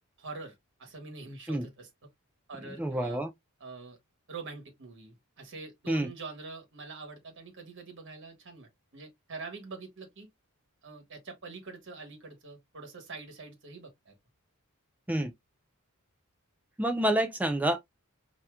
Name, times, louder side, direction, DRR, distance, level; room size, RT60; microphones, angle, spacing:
voice 1, 0.2-1.9 2.5-3.2 3.6-4.0 4.3-10.3 10.8-14.1, right 3 dB, 60° right, 1.4 m, -45 dB
voice 2, 2.8-3.3 5.9-6.1 15.1-15.3 16.8-17.8, right 1 dB, 5° right, 0.4 m, -28 dB
4.5 x 2.8 x 2.2 m
head